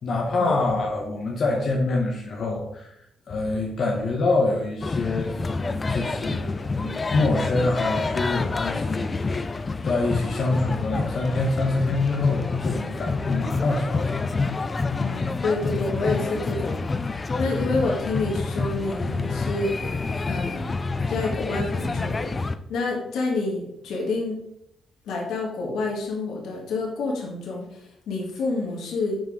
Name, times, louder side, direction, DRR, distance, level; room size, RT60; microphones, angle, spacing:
voice 1, 0.0-2.9 3.3-5.4 5.6-9.5 9.8-14.3, left 2 dB, 55° left, 0 dB, 1.1 m, -26 dB
sound 1, 4.8-22.6, left 3 dB, 30° left, 0.4 m, -28 dB
voice 2, 15.0-16.8 17.1-19.7 20.3-20.8 21.1-22.3 22.7-24.4 25.0-29.2, left 3 dB, 85° left, -1 dB, 1.6 m, -28 dB
6.0 x 4.5 x 4.7 m, 0.78 s
cardioid pair, 105°, 0 cm